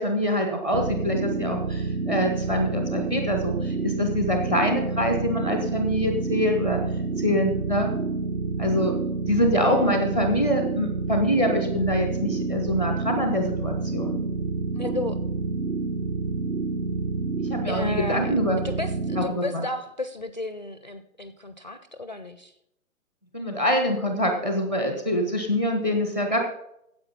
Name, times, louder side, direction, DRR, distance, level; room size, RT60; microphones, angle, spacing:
voice 1, 0.0-6.8 7.2-7.9 8.6-8.9 9.3-14.2 17.4-18.6 19.2-19.6 23.3-26.4, equal, 10° right, 5 dB, 0.6 m, -25 dB
sound 1, 0.7-19.3, right 4 dB, 65° right, 1.0 m, -28 dB
voice 2, 9.5-10.0 14.8-15.2 17.7-18.3 18.6-22.5, left 2 dB, 35° left, 11 dB, 0.4 m, -33 dB
9.5 x 7.8 x 5.6 m, 0.77 s
figure-of-eight pair, 135°, 43 cm